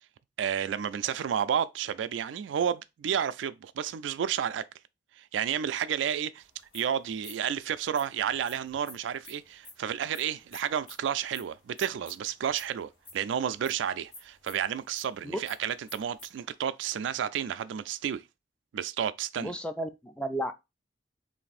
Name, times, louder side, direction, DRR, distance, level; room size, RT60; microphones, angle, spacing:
voice 1, 0.4-4.6 5.2-6.4 6.7-18.2 18.7-19.5, right 8 dB, 85° right, 0.3 m, -31 dB
sound 1, 6.4-16.4, left 2 dB, 65° left, 1.8 m, -51 dB
voice 2, 19.4-20.5, right 1 dB, 5° left, 0.3 m, -33 dB
3.3 x 2.6 x 4.0 m
head